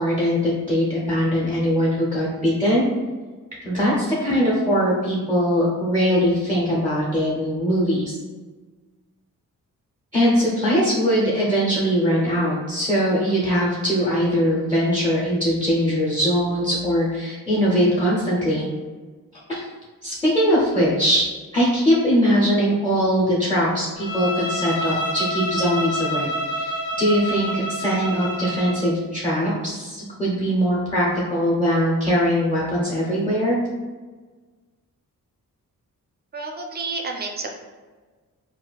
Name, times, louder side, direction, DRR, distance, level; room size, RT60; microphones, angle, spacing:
voice 1, 0.0-2.8 3.6-8.2 10.1-18.7 19.5-19.7 20.0-21.2 21.5-33.6, equal, 15° left, -6 dB, 0.6 m, -21 dB
Bowed string instrument, 24.0-28.9, equal, 65° left, 1.2 m, -28 dB
voice 2, 36.3-37.5, right 3 dB, 30° right, 2 dB, 0.4 m, -30 dB
4.1 x 2.4 x 2.3 m, 1.4 s
wide cardioid pair, 165°, 34 cm